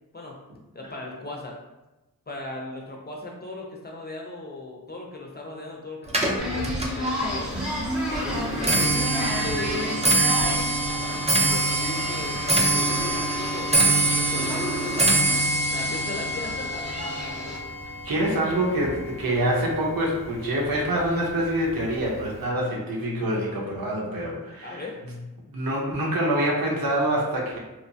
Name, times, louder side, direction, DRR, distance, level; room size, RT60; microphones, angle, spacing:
voice 1, 0.7-1.6 2.3-7.7 8.1-10.6 11.3-16.7 24.6-25.0, left 2 dB, 30° left, -1 dB, 0.5 m, -37 dB
Clock, 6.1-19.4 19.7-20.2 21.0-21.1 21.4-21.8 22.1-22.2, right 2 dB, 20° right, 0.5 m, -25 dB
sound 1, 6.4-17.6, equal, ahead, 0.9 m, -32 dB
voice 2, 18.0-24.8 25.5-27.6, right 1 dB, 75° right, -3 dB, 0.8 m, -26 dB
2.8 x 2.2 x 2.6 m, 1.0 s
wide cardioid pair, 65°, 35 cm